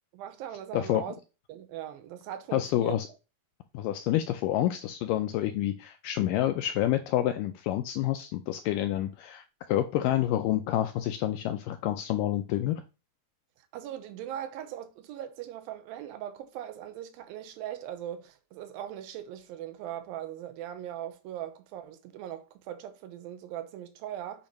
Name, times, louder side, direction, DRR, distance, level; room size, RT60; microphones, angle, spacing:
voice 1, 0.1-1.2 1.5-3.0 13.7-24.5, right 11 dB, 80° right, 2.4 m, -40 dB
voice 2, 0.7-1.0 2.5-3.1 3.7-12.8, left 13 dB, 80° left, 1.9 m, -28 dB
8.7 x 2.9 x 5.3 m
omnidirectional pair, 4.3 m